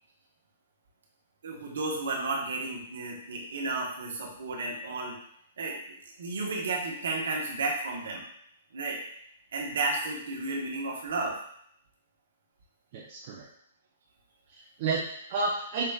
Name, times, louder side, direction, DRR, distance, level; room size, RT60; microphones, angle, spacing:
voice 1, 1.4-5.1 5.6-5.8 6.0-8.2 8.7-9.0 9.5-11.3, right 3 dB, 70° right, -1 dB, 1.1 m, -32 dB
voice 2, 12.9-13.5 14.5-15.9, right 3 dB, 50° right, -3 dB, 0.7 m, -31 dB
5.7 x 3.2 x 2.4 m, 0.68 s
hypercardioid pair, 120°, 0 cm